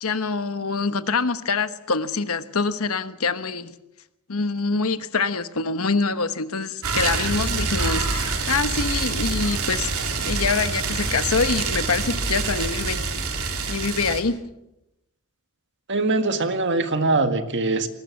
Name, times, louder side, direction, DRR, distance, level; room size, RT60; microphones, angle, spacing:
voice 1, 0.0-3.7 4.3-13.1 13.7-14.4, left 4 dB, 75° left, 11 dB, 1.2 m, -25 dB
sound 1, 6.8-14.2, right 4 dB, 75° right, 3.4 m, -26 dB
voice 2, 15.9-17.9, right 3 dB, 55° right, 8 dB, 1.8 m, -22 dB
21.0 x 19.0 x 7.2 m, 0.91 s
head